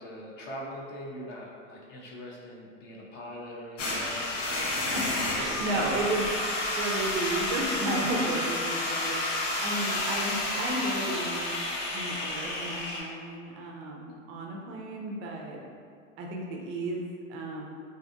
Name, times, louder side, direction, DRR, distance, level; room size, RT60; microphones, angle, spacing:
voice 1, 0.0-4.5 5.4-6.0 9.3-10.1, equal, 30° left, -3 dB, 0.4 m, -42 dB
sound 1, 3.8-13.0, left 2 dB, 70° left, 0.7 m, -30 dB
voice 2, 5.3-6.3 6.7-9.2 9.6-11.6 11.9-15.6 16.2-17.7, right 2 dB, 30° right, 0 dB, 0.4 m, -33 dB
2.5 x 2.5 x 2.4 m, 2.2 s
hypercardioid pair, 95°, 39 cm